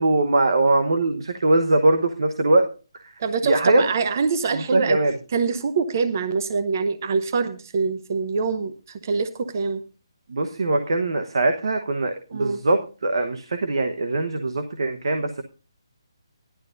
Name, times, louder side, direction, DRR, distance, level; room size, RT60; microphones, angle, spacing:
voice 1, 0.0-2.7 3.4-3.8 4.5-5.1 10.3-15.4, right 2 dB, 65° right, 6 dB, 1.1 m, -21 dB
voice 2, 3.2-5.0 5.3-9.8 12.3-12.6, right 4 dB, 35° right, 11 dB, 0.7 m, -24 dB
15.0 x 11.5 x 2.6 m, 0.34 s
hypercardioid pair, 170°, 3 cm